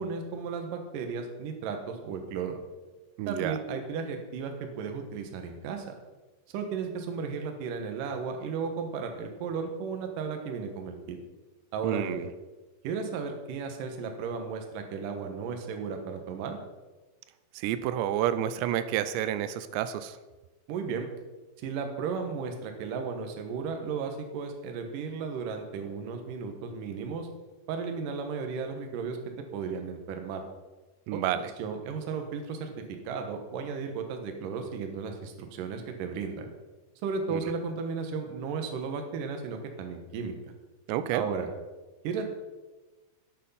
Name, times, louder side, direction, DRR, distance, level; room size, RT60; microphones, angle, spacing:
voice 1, 0.0-2.6 3.3-5.9 6.5-11.2 11.7-12.2 12.8-16.6 20.7-21.1 21.6-27.3 27.7-29.2 29.5-30.4 31.1-31.2 31.6-32.7 33.0-36.5 37.0-40.4 41.1-41.5 42.0-42.2, right 5 dB, 65° right, 5 dB, 2.5 m, -34 dB
voice 2, 3.2-3.6 11.8-12.3 17.5-20.2 31.1-31.5 37.3-37.5 40.9-41.3, right 11 dB, 85° right, 12 dB, 2.8 m, -30 dB
11.0 x 8.5 x 5.6 m, 1.2 s
omnidirectional pair, 4.9 m